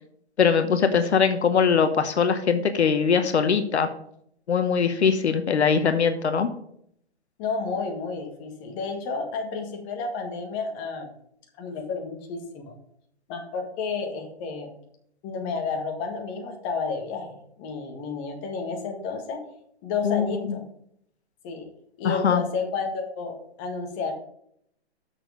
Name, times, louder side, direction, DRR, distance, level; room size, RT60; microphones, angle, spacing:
voice 1, 0.4-3.9 4.5-6.5 20.0-20.3 22.0-22.4, left 6 dB, 85° left, 9 dB, 0.9 m, -21 dB
voice 2, 7.4-11.1 11.6-12.7 13.3-14.7 15.2-19.4 19.8-20.6 21.4-21.7 22.0-24.1, left 4 dB, 30° left, 3 dB, 1.6 m, -31 dB
6.5 x 6.3 x 5.0 m, 0.69 s
hypercardioid pair, 145°, 33 cm